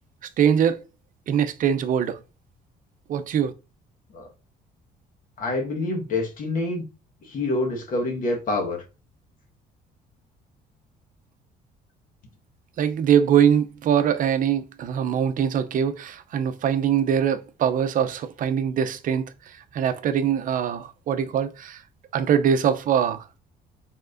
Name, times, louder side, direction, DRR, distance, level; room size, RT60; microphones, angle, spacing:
voice 1, 0.4-0.8 1.3-2.2 3.1-3.5 12.8-21.8 22.1-23.2, right 8 dB, 55° right, 0.6 m, -22 dB
voice 2, 5.4-6.9 7.2-8.8, left 2 dB, 55° left, 1.5 m, -27 dB
4.6 x 3.6 x 2.6 m
cardioid pair, 110°, 17 cm